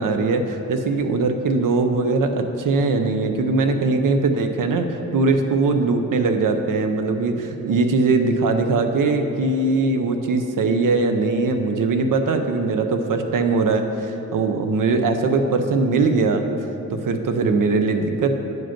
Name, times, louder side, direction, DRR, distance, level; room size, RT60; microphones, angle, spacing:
voice 1, 0.0-7.3 7.7-16.4 16.9-18.3, right 3 dB, 85° right, 6 dB, 0.7 m, -21 dB
9.2 x 5.1 x 5.8 m, 2.9 s
wide cardioid pair, 160°, 31 cm